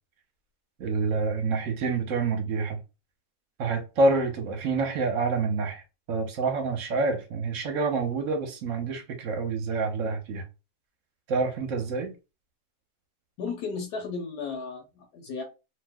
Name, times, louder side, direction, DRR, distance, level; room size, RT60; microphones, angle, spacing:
voice 1, 0.8-2.8 3.6-5.8 6.1-10.4 11.3-12.1, right 3 dB, 60° right, 1.0 m, -27 dB
voice 2, 13.4-15.4, left 4 dB, 80° left, 1.2 m, -34 dB
3.0 x 2.1 x 3.4 m
omnidirectional pair, 1.8 m